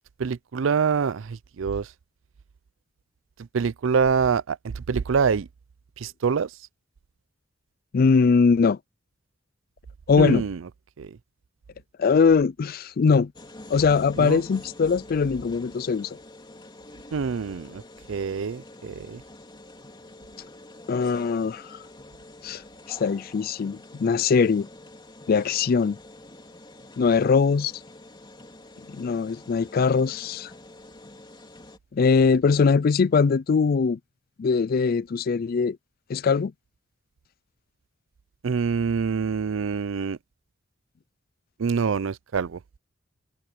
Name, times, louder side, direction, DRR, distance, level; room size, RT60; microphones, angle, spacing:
voice 1, 0.2-1.9 3.4-5.5 6.0-6.5 10.2-10.6 11.0-11.2 14.2-14.4 17.1-17.8 18.1-19.2 38.4-40.2 41.6-42.6, right 6 dB, 85° right, 0.5 m, -25 dB
voice 2, 7.9-8.8 10.1-10.4 12.0-13.3 13.7-16.2 20.9-21.8 22.4-22.6 22.9-24.7 25.3-26.0 27.0-27.7 28.9-30.5 31.9-34.0 34.4-35.8 36.1-36.5, left 5 dB, 50° left, 0.4 m, -21 dB
sound 1, 13.3-31.8, left 1 dB, 25° left, 3.3 m, -46 dB
head